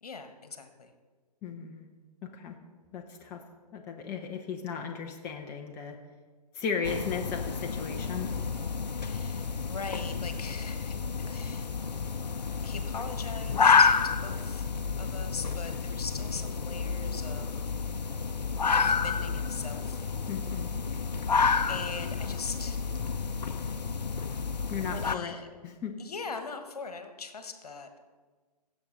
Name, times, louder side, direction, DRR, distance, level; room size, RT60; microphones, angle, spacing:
voice 1, 0.0-0.9 9.0-11.7 12.6-13.9 14.2-14.6 15.0-17.7 18.7-20.0 21.7-22.8 24.9-25.5 26.0-28.0, left 4 dB, 65° left, 8 dB, 1.3 m, -41 dB
voice 2, 1.4-1.9 2.2-2.6 2.9-3.4 3.7-6.0 6.5-8.3 20.3-20.7 24.7-25.4 25.6-25.9, left 6 dB, 10° left, 2 dB, 0.5 m, -36 dB
sound 1, 6.8-25.1, left 5 dB, 85° left, 0.5 m, -29 dB
15.5 x 7.2 x 3.9 m, 1.4 s
figure-of-eight pair, 135°, 21 cm